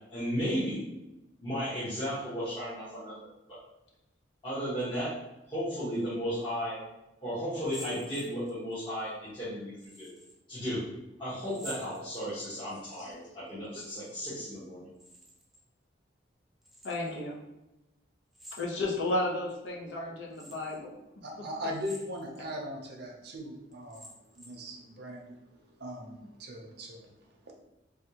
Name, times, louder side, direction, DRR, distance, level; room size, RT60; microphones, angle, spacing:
voice 1, 0.1-0.8 1.4-3.6 4.4-5.2 5.5-6.8 7.2-10.1 10.5-10.8 11.2-14.9, equal, 25° left, -13 dB, 1.0 m, -34 dB
sound 1, 7.5-8.8 9.8-10.4 11.4-12.6 13.6-14.4 14.6-15.6 16.6-17.2 18.3-19.1 19.7-19.8 20.3-20.8 21.7-22.4 22.9-23.0 23.7-24.7, equal, ahead, 0.3 m, -49 dB
voice 2, 16.8-17.4 18.6-20.9, left 2 dB, 70° left, -2 dB, 0.7 m, -33 dB
voice 3, 21.2-24.1 24.3-25.4 25.8-27.1 27.5-27.6, equal, 60° right, 0 dB, 0.6 m, -39 dB
3.3 x 2.3 x 2.8 m, 0.94 s
head